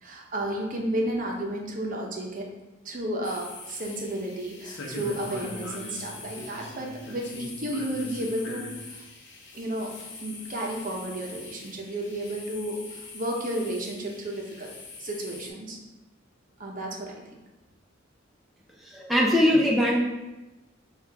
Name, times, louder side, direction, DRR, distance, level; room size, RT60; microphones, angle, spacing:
voice 1, 0.0-2.5 2.8-9.0 9.5-9.9 10.2-14.7 15.0-15.8 16.6-17.1, right 1 dB, 45° right, 0 dB, 0.7 m, -32 dB
sound 1, 3.2-15.5, left 3 dB, 65° left, 0.7 m, -42 dB
voice 2, 18.8-20.0, left 1 dB, ahead, -3 dB, 0.4 m, -21 dB
6.3 x 2.4 x 3.4 m, 1.1 s
head